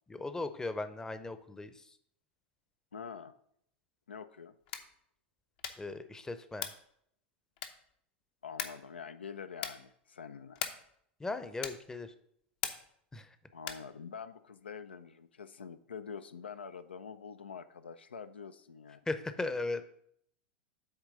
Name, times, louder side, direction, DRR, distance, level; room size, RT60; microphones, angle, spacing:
voice 1, 0.1-1.9 5.8-6.7 11.2-12.1 13.1-13.4 19.1-19.8, left 2 dB, 10° left, 11 dB, 0.6 m, -37 dB
voice 2, 2.9-3.3 4.1-4.5 8.4-10.6 13.5-19.0, left 6 dB, 85° left, 11 dB, 0.4 m, -46 dB
sound 1, 4.6-5.0 5.6-6.0 6.6-6.9 7.6-8.0 8.6-8.9 9.6-9.9 10.6-11.0 11.6-11.9 12.6-13.0 13.6-13.9, left 9 dB, 60° left, 0.8 m, -40 dB
8.2 x 3.3 x 6.3 m, 0.69 s
hypercardioid pair, 95°, 6 cm